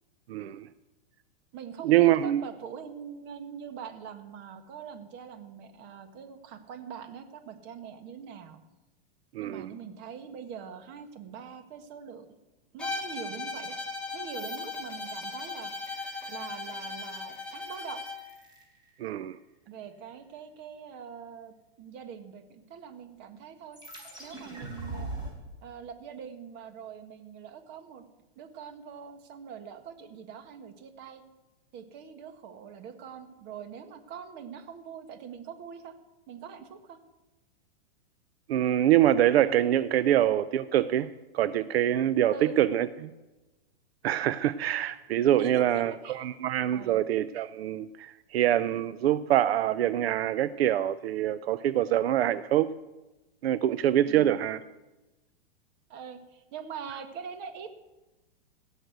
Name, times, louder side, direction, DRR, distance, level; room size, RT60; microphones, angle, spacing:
voice 1, 0.3-0.7 1.8-2.4 9.3-9.7 19.0-19.4 38.5-41.1 41.3-42.9 44.0-52.7 53.4-54.6, right 12 dB, 75° right, 0.6 m, -25 dB
voice 2, 1.5-8.6 9.4-12.3 12.7-13.8 14.1-15.7 16.3-18.0 19.7-23.8 24.2-25.1 25.6-28.0 28.3-31.2 31.7-35.9 36.3-37.0 42.3-43.1 45.3-46.3 46.7-47.0 54.0-54.4 55.9-57.7, right 7 dB, 35° right, 1.5 m, -43 dB
Bowed string instrument, 12.8-18.3, left 3 dB, 5° left, 1.1 m, -37 dB
sound 1, 14.3-19.3 23.7-25.3, right 2 dB, 15° right, 3.8 m, -44 dB
16.5 x 6.6 x 7.9 m
supercardioid pair, 150°, 31 cm